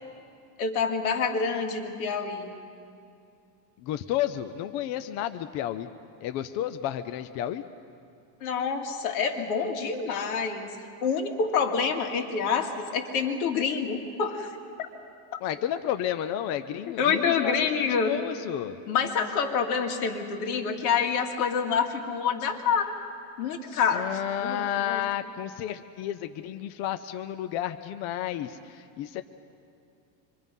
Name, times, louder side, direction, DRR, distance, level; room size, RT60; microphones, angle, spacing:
voice 1, 0.6-2.5 8.4-10.7 11.0-14.9 17.0-18.2 18.9-22.9 23.4-24.0 24.4-25.0, left 6 dB, 85° left, 3 dB, 2.5 m, -27 dB
voice 2, 3.8-5.9 6.2-7.6 15.4-18.8 23.9-29.2, left 11 dB, 40° left, 10 dB, 0.5 m, -31 dB
26.0 x 23.0 x 5.4 m, 2.5 s
cardioid pair, 165°, 43 cm